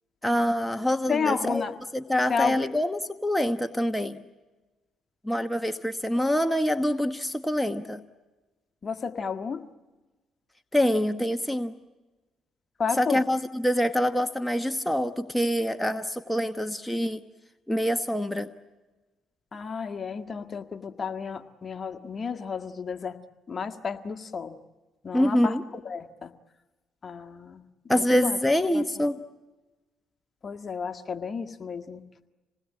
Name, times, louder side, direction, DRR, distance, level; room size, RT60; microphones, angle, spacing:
voice 1, 0.2-1.6 1.9-4.2 5.2-8.0 10.7-11.7 12.9-17.2 17.7-18.5 25.1-25.6 27.9-29.2, equal, 5° left, 8 dB, 1.1 m, -25 dB
voice 2, 1.1-1.7 2.3-2.6 8.8-9.6 12.8-13.2 19.5-23.1 23.5-24.5 25.0-25.6 25.8-26.3 27.0-27.6 27.9-28.4 28.7-28.8 30.4-32.0, left 5 dB, 40° left, 7 dB, 1.7 m, -31 dB
27.0 x 19.5 x 8.7 m, 1.2 s
supercardioid pair, 65°, 0 cm